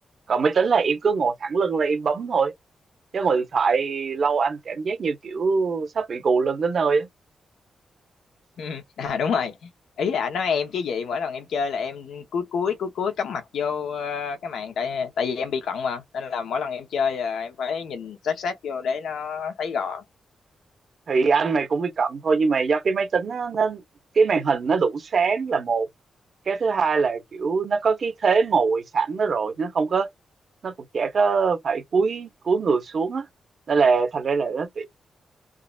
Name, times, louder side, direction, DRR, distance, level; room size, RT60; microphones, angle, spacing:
voice 1, 0.3-2.5 3.1-7.1 21.1-23.8 24.1-25.9 26.5-30.1 30.6-33.2 33.7-34.9, right 5 dB, 55° right, 1.0 m, -23 dB
voice 2, 8.6-9.7 10.0-20.0, left 6 dB, 85° left, 1.0 m, -28 dB
3.6 x 2.0 x 2.4 m
cardioid pair, 105°, 0 cm